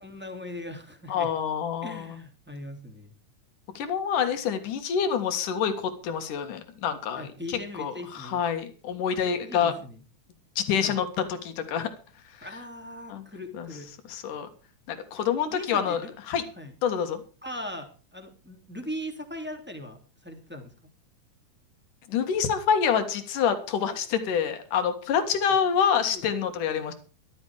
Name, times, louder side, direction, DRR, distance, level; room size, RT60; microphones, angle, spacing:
voice 1, 0.0-1.3 1.8-3.1 7.2-8.4 9.4-10.0 10.8-11.0 12.4-13.9 15.5-16.1 16.6-16.7 17.4-20.7 25.9-26.2, left 1 dB, 5° right, 4 dB, 2.4 m, -39 dB
voice 2, 1.1-2.0 3.7-9.7 10.6-11.9 13.1-13.2 13.6-13.7 14.1-14.5 14.9-16.0 16.3-16.4 16.8-17.2 22.1-26.9, left 7 dB, 85° left, 8 dB, 3.3 m, -27 dB
14.5 x 12.5 x 4.8 m, 0.36 s
omnidirectional pair, 3.6 m